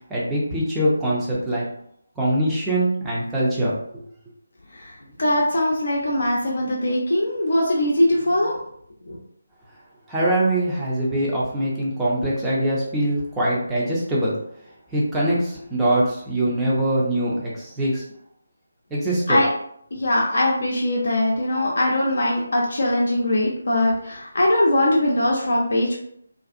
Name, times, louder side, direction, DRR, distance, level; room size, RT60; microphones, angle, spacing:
voice 1, 0.1-1.6 2.2-4.1 10.1-14.3 14.9-18.0 18.9-19.4, right 1 dB, 10° right, -7 dB, 0.6 m, -23 dB
voice 2, 5.2-8.5 9.1-9.2 19.3-19.5 19.9-26.0, left 1 dB, 55° left, -3 dB, 0.5 m, -21 dB
2.5 x 2.4 x 2.5 m, 0.70 s
figure-of-eight pair, 155°, 0 cm